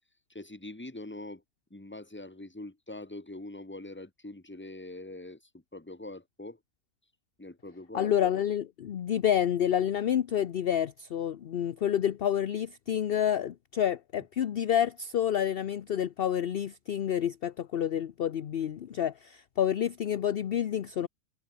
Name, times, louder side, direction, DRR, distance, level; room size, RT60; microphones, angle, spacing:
voice 1, 0.3-1.4 1.7-5.4 5.7-6.6 7.4-8.1, left 2 dB, 10° left, 1.6 m, -43 dB
voice 2, 7.9-21.1, left 9 dB, 50° left, 0.7 m, -29 dB
omnidirectional pair, 1.5 m